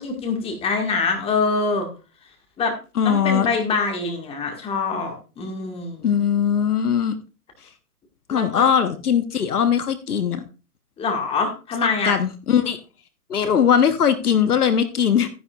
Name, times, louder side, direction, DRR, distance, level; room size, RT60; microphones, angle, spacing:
voice 1, 0.0-1.9 2.6-2.7 3.0-6.1 8.3-8.7 11.0-12.2, left 4 dB, 10° left, 3 dB, 1.7 m, -24 dB
voice 2, 3.0-3.5 6.0-7.2 8.3-10.4 12.0-12.8 13.3-15.3, left 8 dB, 70° left, 10 dB, 1.3 m, -20 dB
13.0 x 9.9 x 2.4 m, 0.33 s
hypercardioid pair, 130°, 46 cm